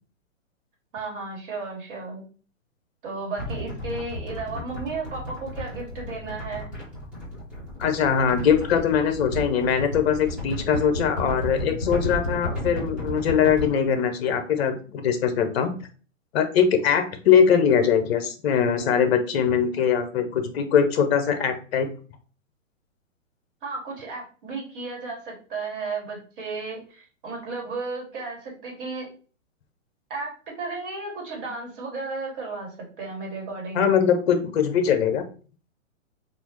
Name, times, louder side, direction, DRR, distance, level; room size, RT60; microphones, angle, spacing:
voice 1, 0.9-2.2 3.0-6.7 23.6-29.1 30.1-33.9, right 3 dB, 40° right, -2 dB, 1.5 m, -34 dB
sound 1, 3.4-13.7, left 1 dB, 5° right, 1.4 m, -33 dB
voice 2, 7.8-15.7 16.3-21.9 33.7-35.2, left 7 dB, 50° left, 7 dB, 0.7 m, -21 dB
3.5 x 2.5 x 2.9 m, 0.39 s
hypercardioid pair, 140°, 40 cm